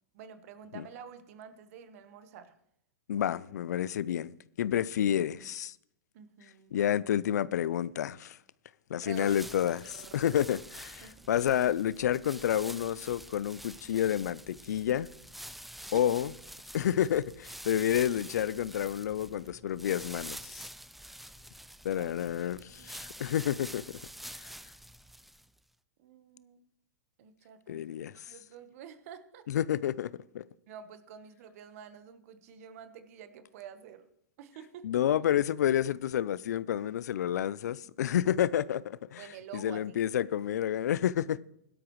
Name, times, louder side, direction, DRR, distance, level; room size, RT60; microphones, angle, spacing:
voice 1, 0.1-2.5 6.1-6.9 9.0-9.5 9.8-10.4 11.0-11.3 15.7-16.1 21.9-23.1 26.0-26.6 27.2-29.5 30.7-34.1 34.4-35.0 39.2-40.0, right 8 dB, 60° right, 1.2 m, -49 dB
voice 2, 3.1-5.7 6.7-8.4 8.9-9.8 10.1-15.1 15.9-16.3 16.7-20.7 21.8-23.8 24.4-24.5 27.7-28.2 29.5-30.4 34.8-39.2 39.5-41.4, left 10 dB, 80° left, 0.5 m, -29 dB
sound 1, 9.1-25.6, right 1 dB, ahead, 0.4 m, -47 dB
16.0 x 12.5 x 3.1 m
hypercardioid pair, 130°, 9 cm